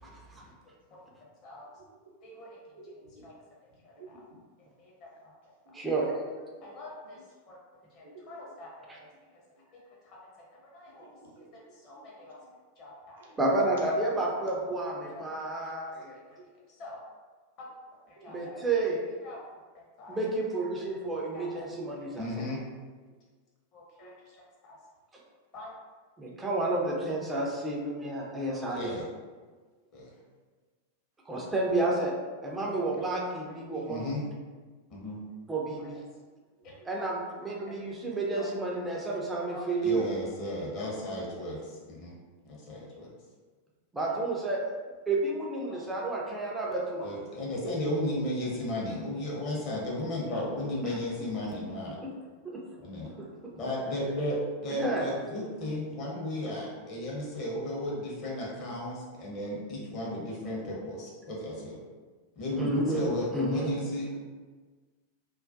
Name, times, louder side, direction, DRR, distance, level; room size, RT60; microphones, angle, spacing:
voice 1, 2.7-3.3 4.0-4.4 5.7-6.9 8.0-8.6 10.9-12.3 13.2-13.4 18.2-18.4 20.8-20.9 24.0-24.1 36.8-36.9 45.7-45.9, right 2 dB, 60° right, -3 dB, 0.6 m, -53 dB
voice 2, 3.8-4.2 4.8-5.3 6.6-7.2 7.5-7.6 7.9-9.1 9.7-10.2 10.7-11.0 11.7-12.4 12.8-13.2 15.1-15.2 15.6-15.8 16.8-17.0 17.6-17.7 18.1-18.6 19.2-19.4 20.0-20.2 21.3-21.7 22.1-22.6 23.7-24.1 24.6-24.8 25.5-25.7 26.5-26.6 28.5-29.1 29.9-30.1 32.7-33.1 33.5-33.6 33.9-34.2 34.9-35.2 35.8-36.0 36.6-37.1 37.6-37.8 38.4-38.9 39.5-42.1 42.4-43.1 45.6-45.8 46.9-52.0 52.8-53.1 53.6-61.8 62.4-64.2, left 1 dB, 35° left, -3 dB, 0.7 m, -35 dB
voice 3, 5.7-6.1 8.9-9.0 13.4-16.2 18.3-19.0 20.1-22.3 26.2-29.0 31.3-32.1 32.4-34.1 35.5-36.0 36.9-40.0 43.9-44.6 45.1-47.1 52.0-52.1 54.8-55.1 62.6-63.0 63.3-63.7, right 2 dB, 10° right, -3 dB, 0.5 m, -30 dB
2.3 x 2.1 x 2.6 m, 1.4 s
figure-of-eight pair, 90°, 0 cm